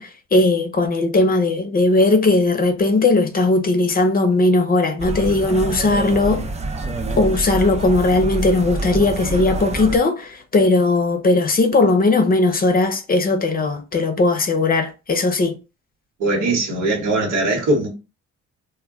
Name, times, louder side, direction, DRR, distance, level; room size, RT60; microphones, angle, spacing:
voice 1, 0.0-6.5 7.2-15.6, left 2 dB, 30° left, 0.6 m, -18 dB
sound 1, 5.0-10.0, right 2 dB, 25° right, 0.4 m, -26 dB
voice 2, 16.2-17.9, right 2 dB, 85° right, 1.2 m, -20 dB
2.2 x 2.1 x 3.5 m
cardioid pair, 90°, 30 cm